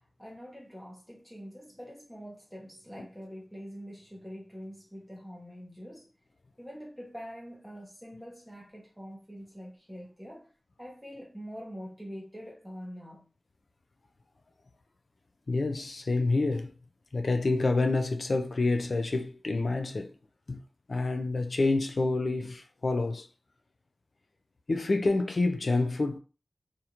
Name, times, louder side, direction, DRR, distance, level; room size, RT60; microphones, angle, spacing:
voice 1, 0.0-6.1 6.6-10.5 10.8-13.3, equal, ahead, 0.7 m, -45 dB
voice 2, 15.5-16.7 17.1-20.1 20.5-20.6 20.9-23.3 24.7-26.2, left 3 dB, 65° left, 0.3 m, -28 dB
2.4 x 2.1 x 2.8 m
wide cardioid pair, 55°, 0 cm